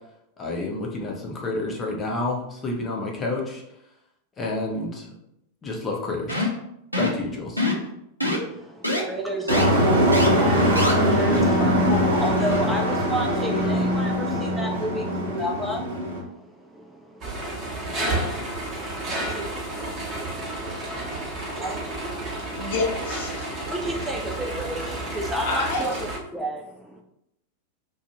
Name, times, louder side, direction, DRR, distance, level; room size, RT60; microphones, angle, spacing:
voice 1, 0.4-3.6 4.4-5.1 5.6-6.5 7.0-7.7, left 2 dB, 20° left, -1 dB, 0.7 m, -29 dB
Game jump Sound, 6.3-6.6 6.9-7.2 7.6-7.9 8.2-8.4 8.8-9.0 9.5-9.6 10.1-10.3 10.7-10.9, left 1 dB, 90° right, 0.5 m, -24 dB
voice 2, 8.2-22.7 23.6-27.0, equal, 5° right, 0 dB, 0.3 m, -33 dB
Truck, 9.5-16.2, equal, 65° right, 1.1 m, -22 dB
sound 1, 17.2-26.2, right 1 dB, 30° right, 0.9 m, -31 dB
voice 3, 22.5-23.5 25.4-26.0, left 3 dB, 55° left, 0 dB, 0.7 m, -28 dB
2.5 x 2.3 x 2.9 m, 0.80 s
figure-of-eight pair, 90°, 0 cm